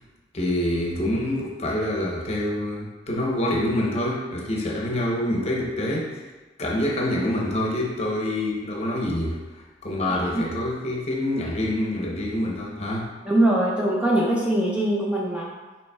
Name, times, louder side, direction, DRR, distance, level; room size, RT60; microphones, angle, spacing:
voice 1, 0.3-6.2 6.6-13.1, left 1 dB, 35° left, -2 dB, 0.8 m, -26 dB
voice 2, 10.1-10.4 13.3-15.5, right 1 dB, 5° right, -5 dB, 0.4 m, -22 dB
6.9 x 3.1 x 2.3 m, 1.2 s
head